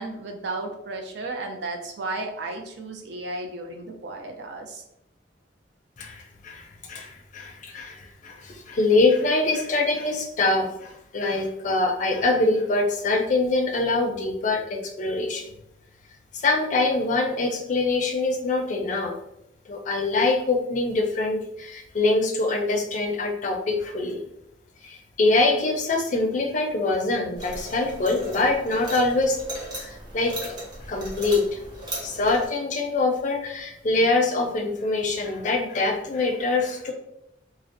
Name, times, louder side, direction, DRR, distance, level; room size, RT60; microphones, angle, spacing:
voice 1, 0.0-4.8, right 2 dB, 70° right, 3 dB, 0.4 m, -34 dB
voice 2, 6.0-15.4 16.3-19.1 19.7-24.2 24.8-29.4 29.7-30.5 30.9-31.6 32.0-36.9, left 3 dB, 45° left, 2 dB, 0.4 m, -24 dB
sound 1, 27.4-32.5, right 1 dB, 25° right, 0.8 m, -37 dB
2.5 x 2.0 x 2.4 m, 0.80 s
head